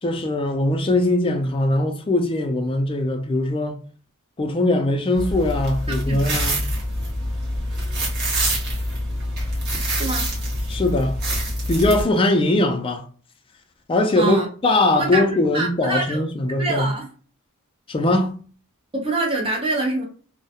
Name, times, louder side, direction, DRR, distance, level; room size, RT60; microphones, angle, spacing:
voice 1, 0.0-3.8 4.4-6.6 10.7-11.2 11.7-13.1 13.9-16.9 17.9-18.3, left 2 dB, 25° left, 0.4 m, -21 dB
sound 1, 5.2-12.0, equal, 50° right, 0.9 m, -25 dB
voice 2, 6.1-6.4 9.9-10.3 14.2-14.5 15.0-16.2 16.6-17.1 18.9-20.0, right 2 dB, 25° right, 0.7 m, -25 dB
2.2 x 2.1 x 2.8 m
head